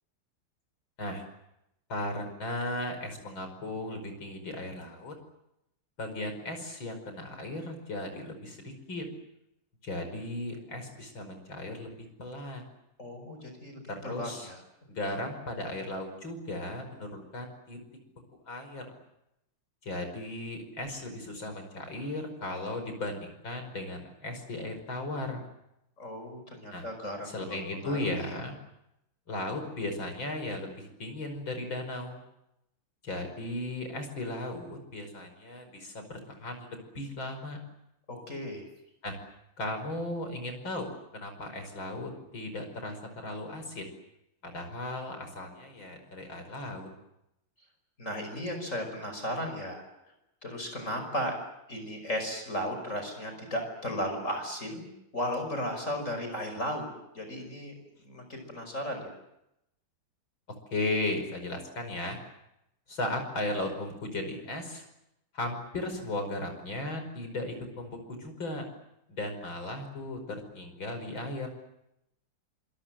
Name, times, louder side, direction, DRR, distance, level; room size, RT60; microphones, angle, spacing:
voice 1, 1.9-5.2 6.0-9.1 9.8-12.6 13.9-14.5 14.9-17.8 18.5-18.8 19.8-25.4 26.7-26.8 27.2-28.5 29.3-32.2 33.0-37.6 39.0-39.2 39.6-43.9 44.4-46.9 60.7-62.2 62.9-64.8 65.3-68.6 69.1-71.5, left 1 dB, 65° left, 6 dB, 6.0 m, -36 dB
voice 2, 13.0-14.6 15.0-15.1 26.0-28.4 38.1-38.6 48.0-49.8 50.4-51.4 51.7-54.9 55.1-56.9 57.1-57.7 58.1-59.1, equal, 35° left, 5 dB, 5.8 m, -35 dB
27.0 x 27.0 x 7.7 m, 0.84 s
omnidirectional pair, 2.3 m